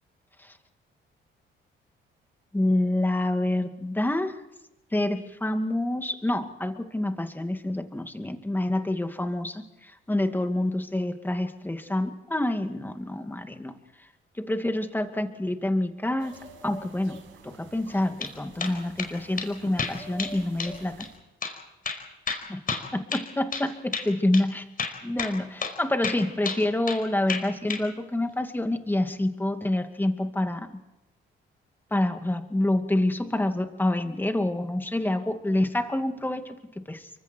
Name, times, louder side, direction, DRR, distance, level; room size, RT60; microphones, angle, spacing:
voice 1, 2.5-4.3 4.9-13.7 14.4-16.3 16.6-17.2 17.4-20.9 22.5-22.6 22.9-24.6 25.0-30.7 31.9-37.1, left 1 dB, 10° left, 6 dB, 2.4 m, -27 dB
sound 1, 16.2-21.2, right 2 dB, 85° right, 7.1 m, -48 dB
sound 2, 17.9-18.3 18.6-19.1 19.4-19.5 19.8-20.3 20.6-20.7 21.0-21.1 21.4-21.6 21.9-23.7 23.9-24.1 24.3-24.5 24.8-25.4 25.6-25.8 26.0-27.0 27.3-27.8, left 5 dB, 45° left, 5.0 m, -31 dB
29.5 x 24.0 x 4.6 m, 0.95 s
cardioid pair, 90°, 20 cm